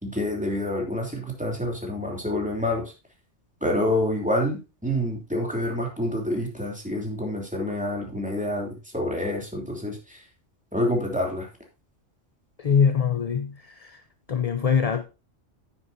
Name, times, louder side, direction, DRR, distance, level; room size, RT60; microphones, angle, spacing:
voice 1, 0.0-2.9 3.6-10.2 10.7-11.5, left 1 dB, 5° right, 3.0 m, -27 dB
voice 2, 12.6-14.0 14.3-15.0, left 6 dB, 40° left, 0.6 m, -23 dB
9.9 x 9.7 x 2.7 m
omnidirectional pair, 1.2 m